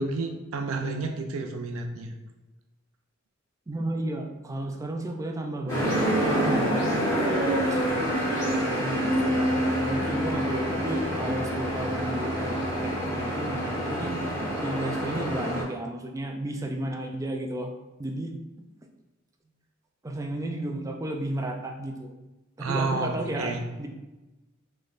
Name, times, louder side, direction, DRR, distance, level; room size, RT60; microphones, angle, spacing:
voice 1, 0.0-2.1 22.6-23.6, right 3 dB, 80° right, 4 dB, 0.4 m, -30 dB
voice 2, 3.7-7.2 7.7-7.8 8.8-12.6 12.8-14.4 14.6-17.7 18.0-18.3 20.0-22.1 22.6-23.9, right 1 dB, 15° right, 3 dB, 0.3 m, -33 dB
sound 1, 5.7-15.6, equal, 15° left, 1.3 m, -27 dB
4.0 x 3.2 x 2.5 m, 1.1 s
head